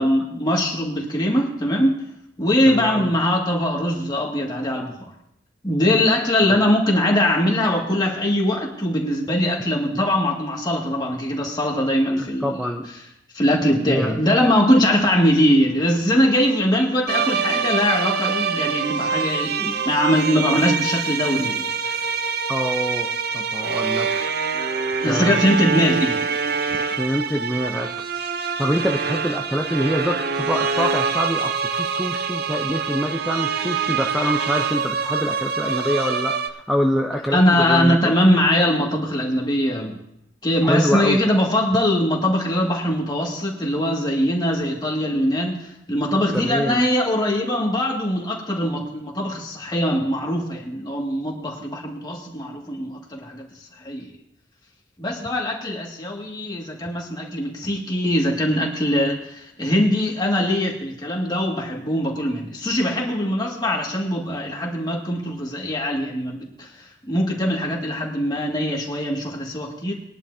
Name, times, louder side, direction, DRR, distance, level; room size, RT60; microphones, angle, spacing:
voice 1, 0.0-2.0 2.4-5.1 5.6-12.6 13.3-19.5 19.9-21.9 25.0-26.2 26.7-26.8 37.3-40.0 40.4-53.5 53.8-54.1 55.0-69.9, equal, 20° left, -1 dB, 2.1 m, -21 dB
voice 2, 2.7-3.1 6.5-6.6 9.9-10.0 12.1-12.9 13.8-14.1 19.6-19.8 20.5-20.6 22.5-23.1 23.3-24.1 25.0-25.4 26.8-27.9 28.6-38.2 40.6-41.2 46.3-46.8 55.6-55.8, equal, ahead, 1 dB, 0.6 m, -25 dB
sound 1, 17.1-36.5, right 5 dB, 55° right, 0.7 m, -25 dB
21.0 x 11.0 x 2.8 m, 0.79 s
head